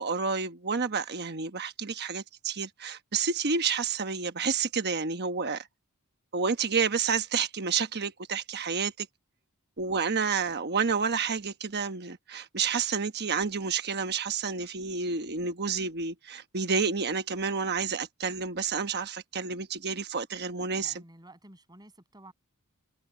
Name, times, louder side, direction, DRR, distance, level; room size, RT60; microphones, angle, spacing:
voice 1, 0.0-5.7 6.3-9.1 9.8-20.9, right 5 dB, 50° right, 1.1 m, -30 dB
voice 2, 20.8-22.3, right 1 dB, 20° right, 7.7 m, -52 dB
head